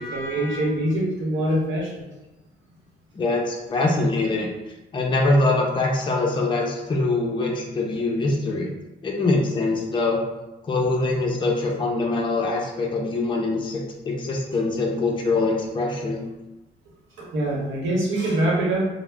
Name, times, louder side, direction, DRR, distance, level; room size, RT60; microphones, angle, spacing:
voice 1, 0.0-2.0 14.5-14.6 17.2-18.9, right 1 dB, 70° right, -3 dB, 0.9 m, -24 dB
voice 2, 3.1-4.5 4.9-8.7 9.0-10.2 10.6-16.2, left 2 dB, 25° left, -1 dB, 0.5 m, -23 dB
2.3 x 2.1 x 3.3 m, 1.0 s
cardioid pair, 90°, 20 cm